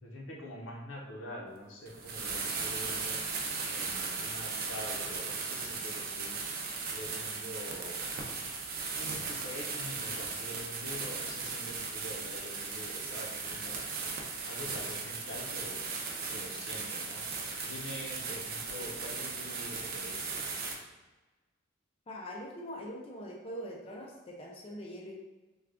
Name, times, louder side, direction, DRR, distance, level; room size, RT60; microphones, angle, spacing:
voice 1, 0.0-3.2 3.7-6.4 6.9-8.0 9.0-13.9 14.5-15.8 16.3-17.2 17.6-20.5, left 1 dB, 80° left, -1 dB, 0.7 m, -45 dB
sound 1, 1.9-20.7, right 4 dB, 50° right, 0.5 m, -37 dB
voice 2, 22.1-25.1, equal, 30° left, -2 dB, 0.4 m, -42 dB
3.3 x 2.3 x 3.6 m, 1.2 s
head